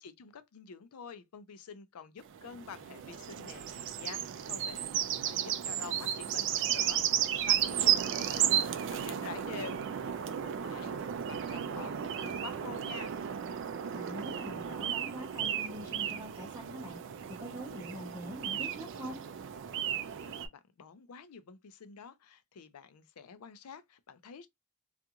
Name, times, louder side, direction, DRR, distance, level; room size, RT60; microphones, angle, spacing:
voice 1, 0.0-4.9 5.2-13.1 19.7-24.5, left 6 dB, 80° left, 0.5 m, -48 dB
sound 1, 2.3-20.5, right 10 dB, 55° right, 0.3 m, -34 dB
voice 2, 13.9-17.0 17.4-19.2, equal, 15° right, 0.8 m, -44 dB
2.5 x 2.3 x 2.8 m
head